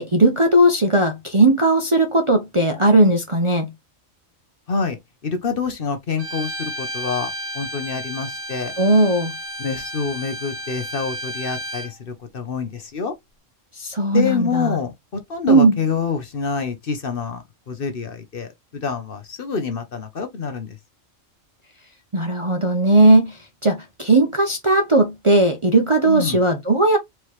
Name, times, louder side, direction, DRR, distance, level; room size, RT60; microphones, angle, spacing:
voice 1, 0.0-3.7 8.8-9.3 13.8-14.8 15.5-15.8 22.1-27.0, right 2 dB, 30° right, 0.6 m, -17 dB
voice 2, 5.2-8.7 9.6-13.1 14.1-20.8 26.0-26.4, left 5 dB, 50° left, 1.0 m, -27 dB
Bowed string instrument, 6.2-11.9, equal, 60° right, 1.2 m, -32 dB
4.7 x 3.0 x 3.1 m
omnidirectional pair, 1.3 m